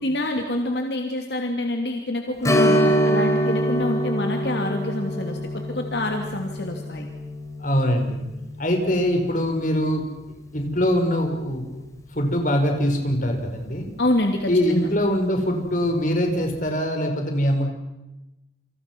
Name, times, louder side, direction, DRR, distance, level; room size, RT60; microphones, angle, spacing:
voice 1, 0.0-7.1 14.0-14.9, left 1 dB, 70° left, 3 dB, 2.8 m, -26 dB
Strum, 2.4-11.6 11.9-12.0 14.6-14.8 15.2-15.3, equal, 15° left, 3.5 m, -26 dB
voice 2, 7.6-8.2 8.6-10.1 10.5-11.6 12.1-13.9 14.5-17.7, equal, 45° left, 4 dB, 5.2 m, -22 dB
29.5 x 26.5 x 6.2 m, 0.96 s
head